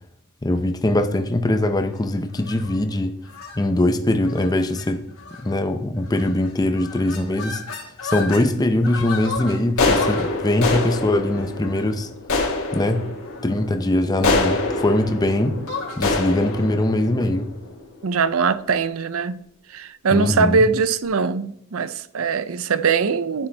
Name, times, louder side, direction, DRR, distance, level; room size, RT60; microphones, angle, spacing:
voice 1, 0.4-3.2 3.6-5.0 5.4-7.6 8.0-12.1 12.7-13.1 13.4-15.6 16.0-17.5 20.1-20.7, left 1 dB, 20° left, 0.6 m, -22 dB
sound 1, 2.4-2.8 3.3-3.6 4.3-4.5 4.8-4.9 5.2-5.6 6.1-6.5 6.8-8.5 8.8-18.0, left 3 dB, 80° left, 2.4 m, -26 dB
voice 2, 18.0-19.4 19.7-23.5, right 5 dB, 70° right, 0.6 m, -21 dB
11.0 x 9.6 x 3.4 m
head